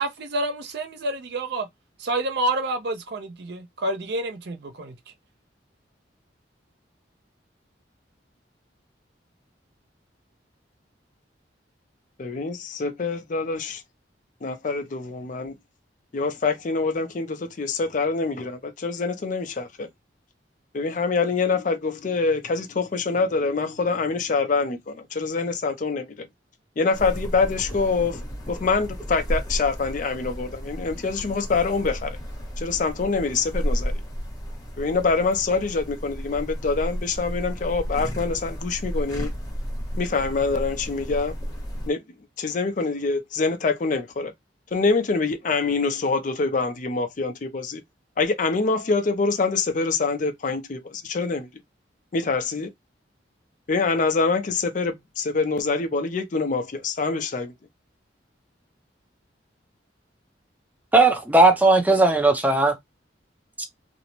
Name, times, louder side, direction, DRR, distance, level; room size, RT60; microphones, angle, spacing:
voice 1, 0.0-1.7 2.0-4.9, right 2 dB, 60° right, 0.5 m, -28 dB
voice 2, 12.2-13.8 14.4-15.5 16.1-19.9 20.7-26.1 26.8-28.2 28.5-32.2 32.6-33.9 34.8-39.3 40.0-41.3 41.9-42.0 42.4-44.3 44.7-47.8 48.2-51.5 52.1-52.7 53.7-57.5, left 4 dB, 45° left, 0.4 m, -25 dB
sound 1, 26.9-41.9, equal, 20° left, 0.8 m, -32 dB
voice 3, 60.9-62.8 63.6-63.7, right 2 dB, 10° right, 0.5 m, -17 dB
2.5 x 2.0 x 2.9 m
head